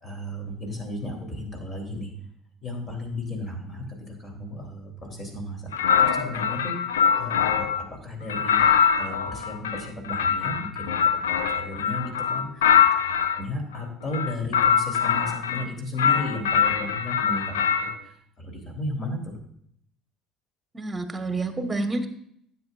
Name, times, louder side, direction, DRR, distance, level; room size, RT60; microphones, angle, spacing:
voice 1, 0.0-2.1 2.6-6.9 7.2-8.7 9.0-12.7 13.0-19.4, left 1 dB, 35° left, 2 dB, 3.5 m, -34 dB
sound 1, 5.7-7.8 8.3-13.4 14.1-15.7 16.0-17.9, left 8 dB, 75° left, 0.6 m, -23 dB
voice 2, 20.7-22.1, right 2 dB, 15° right, 7 dB, 1.4 m, -28 dB
15.5 x 7.6 x 2.5 m, 0.67 s
figure-of-eight pair, 55°, 0 cm